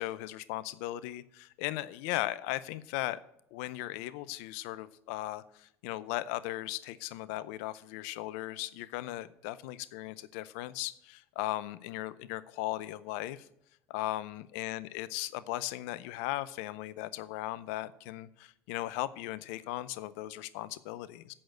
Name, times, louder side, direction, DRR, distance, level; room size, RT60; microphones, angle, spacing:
voice 1, 0.0-3.2 3.5-13.5 13.9-21.3, left 16 dB, 80° left, 17 dB, 0.5 m, -37 dB
8.6 x 6.5 x 7.9 m, 0.77 s
supercardioid pair, 85°, 7 cm